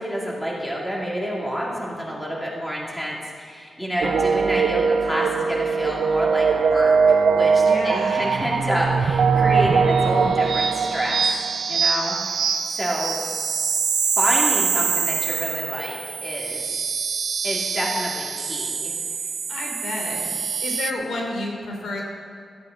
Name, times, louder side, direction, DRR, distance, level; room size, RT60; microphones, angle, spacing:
voice 1, 0.0-11.2 11.7-13.2 14.2-16.6 17.4-18.9, equal, 5° left, -4 dB, 2.6 m, -28 dB
sound 1, 4.0-20.9, right 5 dB, 65° right, 0.6 m, -22 dB
voice 2, 7.6-8.4 19.5-20.2 20.6-22.0, left 2 dB, 80° left, 0 dB, 3.1 m, -30 dB
16.0 x 13.5 x 4.0 m, 2.4 s
wide cardioid pair, 140°, 0 cm